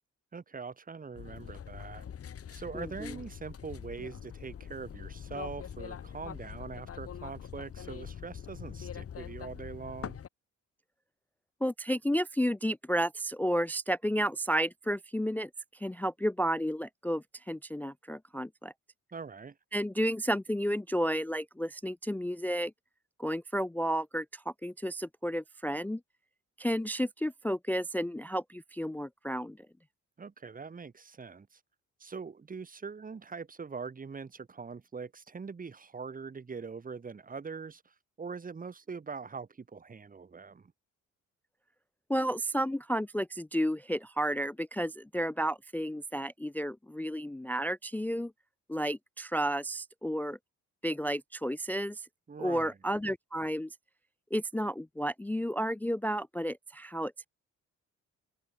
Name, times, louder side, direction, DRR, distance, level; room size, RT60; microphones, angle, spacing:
voice 1, 0.3-2.0 2.5-10.2 19.1-19.6 30.2-31.6 32.0-40.7 52.3-52.7, right 5 dB, 30° right, 1.6 m, -43 dB
sound 1, 1.1-10.3, left 8 dB, 50° left, 2.1 m, -44 dB
voice 2, 2.7-3.1 11.6-15.5 15.8-18.7 19.7-22.7 23.2-26.0 26.6-29.6 42.1-48.3 48.7-50.4 50.8-52.1 52.4-53.7 54.3-57.1, equal, 5° left, 0.3 m, -32 dB
open air
cardioid pair, 90°, 30 cm